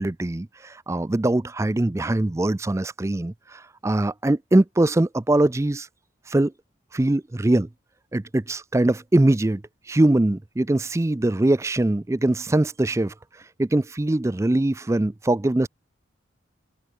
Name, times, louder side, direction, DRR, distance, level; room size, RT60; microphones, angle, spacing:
voice 1, 0.0-5.9 6.3-6.5 6.9-7.7 8.1-15.7, right 1 dB, 15° right, 0.4 m, -22 dB
open air
head